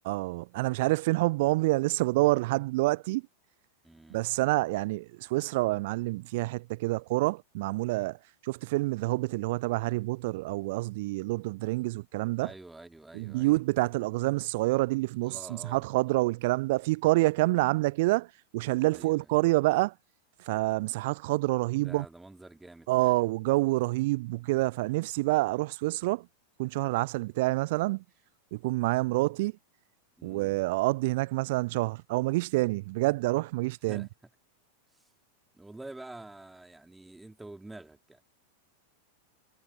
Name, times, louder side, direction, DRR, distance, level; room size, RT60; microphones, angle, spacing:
voice 1, 0.1-3.2 4.1-8.2 8.4-12.5 13.1-19.9 20.4-22.0 22.9-26.3 26.6-28.0 28.5-29.5 30.2-34.1, right 21 dB, 50° right, 0.3 m, -27 dB
voice 2, 3.8-4.2 12.4-13.6 15.2-15.9 18.9-19.3 21.7-23.2 30.2-30.5 33.8-34.1 34.9-35.1 35.5-38.2, right 2 dB, 5° right, 2.8 m, -48 dB
figure-of-eight pair, 90°, 0 cm